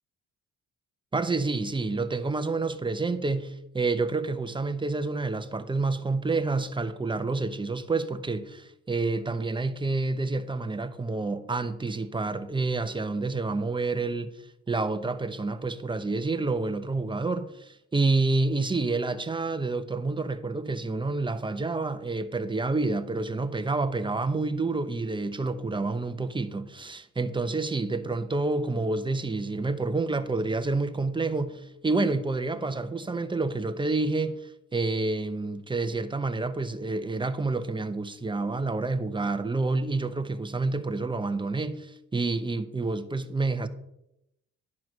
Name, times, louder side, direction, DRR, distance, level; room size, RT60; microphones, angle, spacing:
voice 1, 1.1-14.3 14.7-43.7, right 3 dB, 15° right, 0.8 m, -28 dB
11.0 x 4.7 x 6.1 m
cardioid pair, 90°, 30 cm